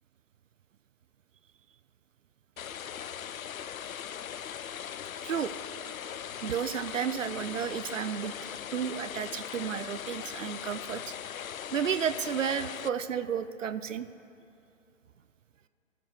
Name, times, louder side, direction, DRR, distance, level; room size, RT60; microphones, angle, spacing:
sound 1, 2.6-12.9, left 9 dB, 85° left, 0.5 m, -40 dB
voice 1, 6.4-8.3 8.7-11.1 11.7-14.1, right 8 dB, 70° right, 13 dB, 0.5 m, -32 dB
14.5 x 13.5 x 3.2 m, 2.7 s
figure-of-eight pair, 140°, 40 cm